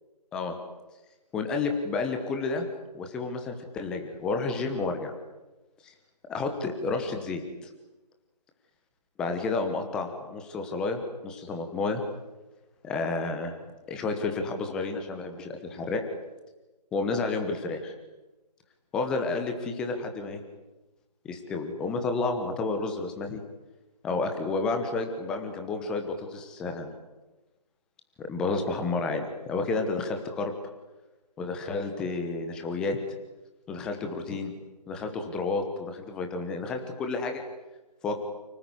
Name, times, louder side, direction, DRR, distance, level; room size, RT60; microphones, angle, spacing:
voice 1, 1.3-2.7 2.9-5.1 5.8-5.9 6.3-7.7 9.2-12.0 12.8-13.5 13.9-16.0 16.9-17.9 18.9-20.4 21.2-23.4 24.0-26.9 28.2-30.5 31.4-33.0 33.7-34.5 34.9-37.4 38.0-38.1, left 3 dB, 5° left, 5 dB, 1.1 m, -30 dB
29.0 x 19.0 x 9.9 m, 1.1 s
figure-of-eight pair, 160°, 21 cm